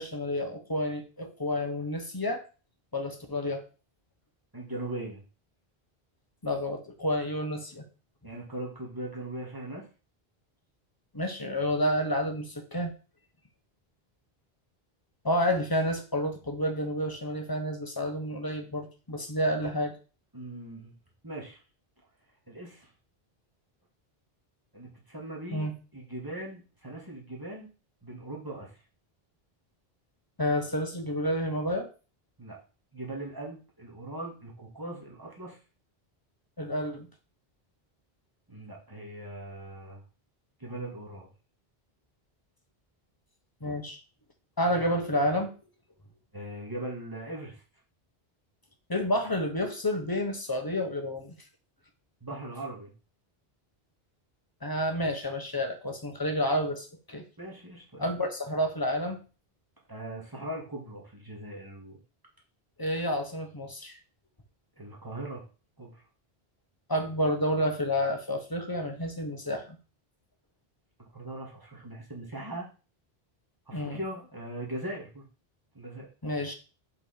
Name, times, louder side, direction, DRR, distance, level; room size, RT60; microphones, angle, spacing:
voice 1, 0.0-2.4 2.9-3.6 6.4-7.8 11.1-12.9 15.2-19.9 25.5-25.7 30.4-31.9 36.6-37.1 43.6-44.0 44.6-45.5 48.9-51.4 54.6-57.2 58.0-59.2 62.8-63.9 66.9-69.8 73.7-74.0 76.2-76.5, equal, 20° left, 5 dB, 1.0 m, -30 dB
voice 2, 4.5-5.2 8.2-9.9 20.3-20.9 21.2-21.6 22.5-22.9 24.7-27.7 28.0-28.8 32.4-32.6 32.9-35.6 38.5-40.0 40.6-41.3 43.6-43.8 46.3-47.6 52.2-52.9 57.4-58.1 59.9-62.0 64.8-65.5 65.8-66.0 71.1-72.7 73.7-75.3 75.7-76.1, right 1 dB, 20° right, -3 dB, 1.9 m, -40 dB
5.3 x 4.1 x 5.0 m, 0.34 s
omnidirectional pair, 1.0 m